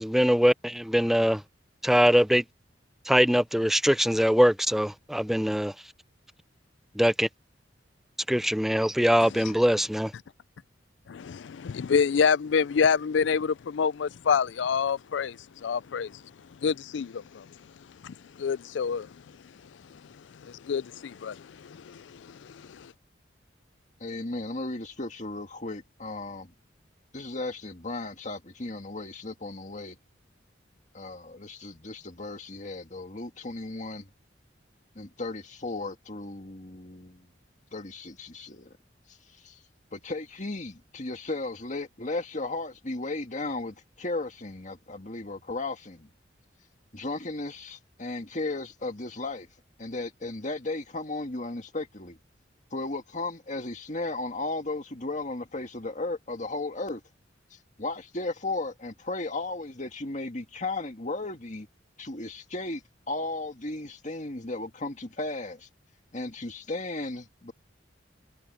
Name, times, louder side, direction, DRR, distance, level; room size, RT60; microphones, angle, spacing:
voice 1, 0.0-1.4 1.8-2.4 3.1-5.7 7.0-7.3 8.3-10.1, equal, ahead, 0.6 m, -22 dB
voice 2, 11.1-16.2 16.6-17.5 18.0-19.1 19.9-20.0 20.3-22.9, left 6 dB, 75° left, 0.4 m, -27 dB
voice 3, 24.0-26.5 27.1-30.0 30.9-34.1 35.0-37.3 37.7-38.7 39.1-39.2 39.4-39.6 39.9-46.1 46.9-49.5 49.8-52.2 52.7-57.0 57.5-61.7 62.0-62.8 63.1-65.7 66.1-67.5, left 2 dB, 40° left, 2.1 m, -35 dB
head